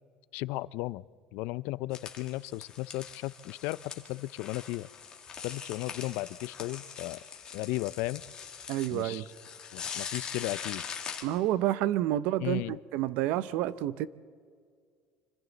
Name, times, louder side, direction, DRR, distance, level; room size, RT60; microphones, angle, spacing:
voice 1, 0.3-1.0 1.3-4.9 5.4-7.2 7.5-8.2 8.9-9.3 9.7-10.8 12.4-12.8, left 19 dB, 70° left, 19 dB, 0.4 m, -35 dB
sound 1, 1.9-11.2, left 7 dB, 25° left, 2.0 m, -42 dB
voice 2, 8.7-9.3 11.2-14.1, right 13 dB, 65° right, 16 dB, 0.7 m, -29 dB
26.5 x 25.5 x 4.1 m, 2.1 s
cardioid pair, 165°, 3 cm